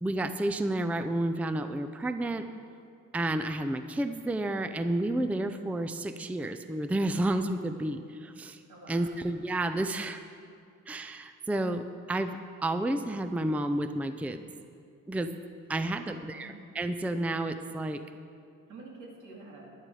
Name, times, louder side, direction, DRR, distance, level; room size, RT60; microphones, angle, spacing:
voice 1, 0.0-2.5 3.1-8.6 8.9-10.2 10.9-14.5 15.1-15.3 15.7-18.0, right 1 dB, 5° right, 9 dB, 0.4 m, -31 dB
voice 2, 8.7-9.2 15.8-16.6 18.7-19.7, right 2 dB, 75° right, -2 dB, 2.7 m, -48 dB
11.5 x 10.5 x 4.8 m, 2.4 s
cardioid pair, 90°, 30 cm